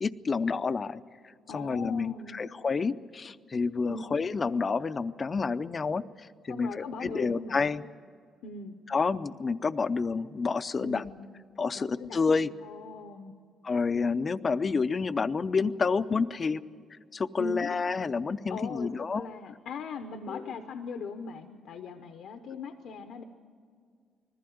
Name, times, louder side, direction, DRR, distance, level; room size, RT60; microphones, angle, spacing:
voice 1, 0.0-7.8 8.9-11.0 11.6-12.5 13.6-16.7 17.1-19.3 20.3-20.5, left 4 dB, 35° left, 14 dB, 0.5 m, -29 dB
voice 2, 1.5-2.4 3.9-4.0 6.5-7.7 8.4-8.8 10.8-11.3 11.7-13.3 17.4-17.7 18.5-23.2, left 4 dB, 80° left, 7 dB, 0.9 m, -40 dB
20.5 x 15.0 x 9.3 m, 2.1 s
cardioid pair, 90°, 0 cm